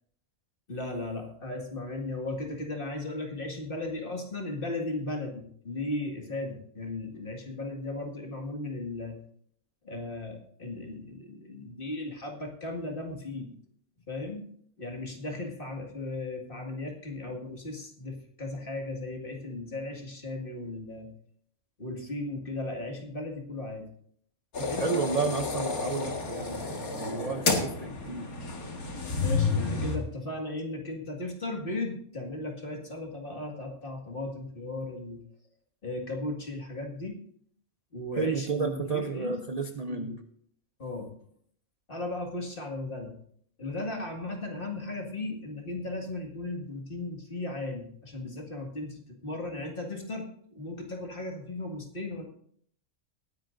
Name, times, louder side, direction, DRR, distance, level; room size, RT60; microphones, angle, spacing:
voice 1, 0.7-9.2 9.8-13.5 14.1-14.4 14.8-21.1 21.8-23.9 24.7-24.9 29.2-35.2 35.8-37.2 37.9-39.4 39.9-40.2 40.8-41.1 41.9-43.1 43.6-50.3 50.5-52.2, left 2 dB, 40° left, 2 dB, 2.1 m, -36 dB
sound 1, 24.5-30.0, left 4 dB, 80° left, 2.2 m, -30 dB
voice 2, 24.6-28.3 38.1-40.2, right 5 dB, 45° right, 7 dB, 0.5 m, -32 dB
20.0 x 10.5 x 2.6 m, 0.63 s
omnidirectional pair, 1.5 m